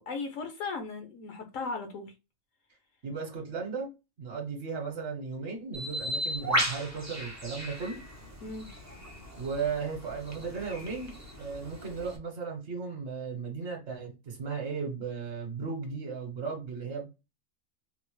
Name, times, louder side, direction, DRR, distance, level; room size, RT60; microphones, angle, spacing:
voice 1, 0.0-2.1 8.4-8.7, left 4 dB, 70° left, 1.0 m, -37 dB
voice 2, 3.0-3.9 4.2-8.0 9.3-11.1 11.4-17.2, right 5 dB, 60° right, 1.1 m, -36 dB
Bird, 5.7-12.2, equal, 25° right, 0.3 m, -36 dB
4.2 x 2.0 x 3.0 m
omnidirectional pair, 1.4 m